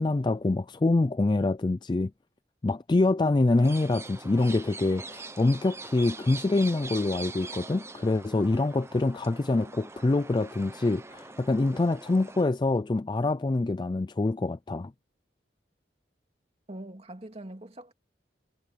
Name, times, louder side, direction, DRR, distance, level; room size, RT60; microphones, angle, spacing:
voice 1, 0.0-2.1 2.6-14.9, left 2 dB, 25° left, 0.4 m, -25 dB
sound 1, 3.5-12.4, right 3 dB, 15° right, 0.7 m, -43 dB
voice 2, 16.7-17.9, right 1 dB, 35° right, 2.5 m, -42 dB
head